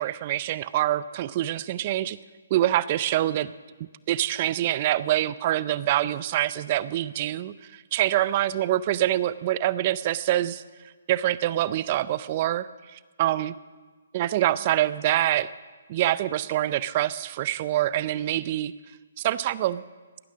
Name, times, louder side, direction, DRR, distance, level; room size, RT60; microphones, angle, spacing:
voice 1, 0.0-2.2 2.5-3.5 4.1-10.6 11.1-13.5 14.1-15.5 15.9-18.7 19.2-19.8, right 13 dB, 40° right, 17 dB, 0.5 m, -25 dB
18.0 x 12.5 x 6.3 m, 1.3 s
figure-of-eight pair, 140°, 0 cm